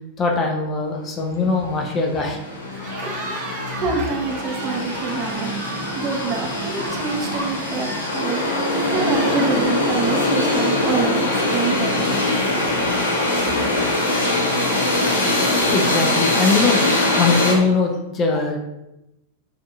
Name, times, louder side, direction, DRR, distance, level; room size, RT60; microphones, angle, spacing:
voice 1, 0.2-2.4 2.8-3.2 15.5-16.9 17.2-18.6, left 4 dB, 30° left, 1 dB, 0.7 m, -21 dB
sound 1, 1.6-1.7 1.9-17.5, left 1 dB, 75° left, 0.9 m, -22 dB
voice 2, 2.7-3.5 3.7-8.5 8.8-11.2 11.5-12.1, right 4 dB, 35° right, 0 dB, 0.9 m, -26 dB
Cheering, 2.7-11.0, right 1 dB, 75° right, 1.2 m, -33 dB
6.8 x 2.8 x 2.6 m, 0.91 s
figure-of-eight pair, 90°, 0 cm